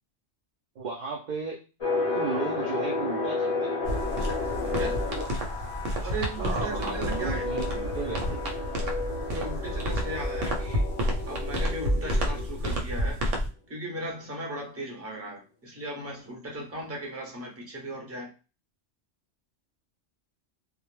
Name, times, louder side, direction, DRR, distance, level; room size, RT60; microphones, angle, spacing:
voice 1, 0.8-1.6 2.1-3.8 6.4-8.5, right 4 dB, 65° right, 0.4 m, -35 dB
sound 1, 1.8-13.0, left 3 dB, 35° left, 0.6 m, -32 dB
sound 2, 3.8-13.5, equal, 90° right, 1.0 m, -30 dB
voice 2, 4.6-5.0 6.0-7.5 9.3-10.9 11.2-13.2 13.7-18.3, right 1 dB, 15° right, 0.6 m, -37 dB
2.1 x 2.0 x 3.1 m
omnidirectional pair, 1.2 m